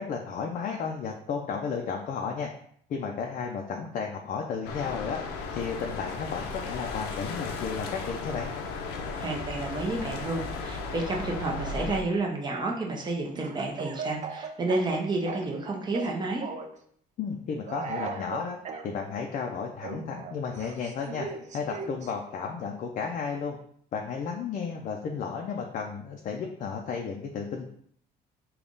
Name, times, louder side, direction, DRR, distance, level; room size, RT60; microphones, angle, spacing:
voice 1, 0.0-2.5 2.9-5.2 5.6-8.5 17.2-18.6 18.8-21.3 21.5-23.6 23.9-27.7, left 6 dB, 50° left, 1 dB, 0.5 m, -33 dB
sound 1, 4.6-12.0, left 4 dB, 90° left, 0.6 m, -35 dB
voice 2, 9.1-16.5, right 2 dB, 25° right, 0 dB, 0.8 m, -30 dB
Speech / Cough, 13.4-15.6 15.9-16.8 17.7-18.9 19.8-22.1, right 5 dB, 45° right, 0.5 m, -38 dB
3.5 x 2.3 x 3.8 m, 0.63 s
cardioid pair, 110°, 17 cm